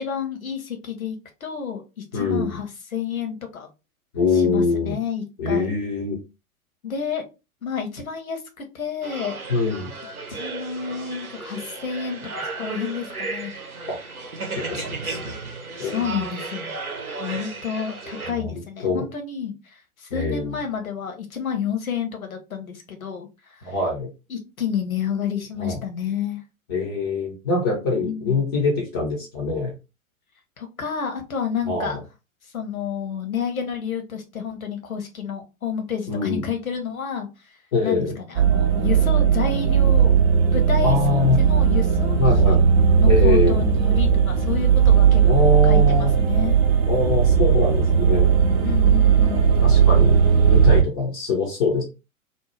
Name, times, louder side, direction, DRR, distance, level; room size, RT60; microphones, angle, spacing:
voice 1, 0.0-3.7 4.3-5.7 6.8-7.3 7.6-9.4 10.3-13.5 15.8-16.7 17.2-23.7 24.3-26.4 28.0-28.4 30.6-32.0 32.5-37.6 37.8-40.2 40.5-42.6 43.0-46.6 48.6-49.4, left 7 dB, 75° left, 5 dB, 0.9 m, -30 dB
voice 2, 2.1-2.6 4.1-5.0 5.4-6.2 9.5-9.9 13.9-14.0 14.5-15.3 15.8-16.3 18.3-18.5 18.8-19.0 20.1-20.6 23.6-24.1 25.6-25.8 26.7-29.7 31.7-32.0 36.1-36.5 37.7-38.2 40.8-41.4 42.2-42.7 43.1-43.6 45.2-46.1 46.9-48.3 49.6-51.8, left 4 dB, 20° left, -1 dB, 0.4 m, -24 dB
sound 1, 9.0-18.3, right 3 dB, 85° right, 0.8 m, -34 dB
sound 2, 38.4-50.8, right 7 dB, 45° right, 0.5 m, -17 dB
2.7 x 2.1 x 3.1 m, 0.27 s
figure-of-eight pair, 105°, 42 cm